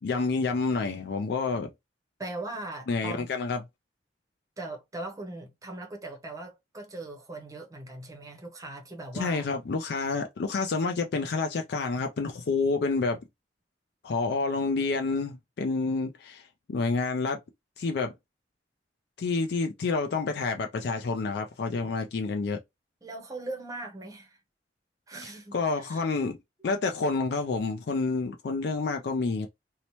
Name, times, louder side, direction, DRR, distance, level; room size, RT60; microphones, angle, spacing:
voice 1, 0.0-1.7 2.9-3.6 9.1-13.2 14.0-17.4 17.8-18.1 19.2-22.6 25.2-26.4 26.6-29.5, left 4 dB, 60° left, 0.4 m, -29 dB
voice 2, 2.2-3.3 4.6-9.5 23.0-24.4 25.1-26.1, right 2 dB, 20° right, 0.7 m, -40 dB
2.7 x 2.1 x 2.9 m
head